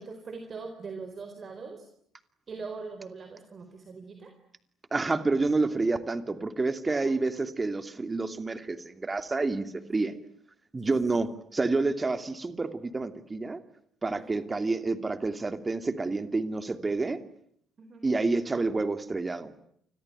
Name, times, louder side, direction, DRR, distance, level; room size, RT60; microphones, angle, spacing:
voice 1, 0.0-1.9 2.5-4.3 7.0-7.1 10.0-10.1 14.3-14.4 17.8-18.0, right 4 dB, 40° right, 7 dB, 4.2 m, -41 dB
voice 2, 4.9-10.1 10.7-13.6 14.0-17.2 18.0-19.5, right 3 dB, 25° right, 10 dB, 2.7 m, -29 dB
29.0 x 21.5 x 9.3 m, 0.69 s
figure-of-eight pair, 50°, 0 cm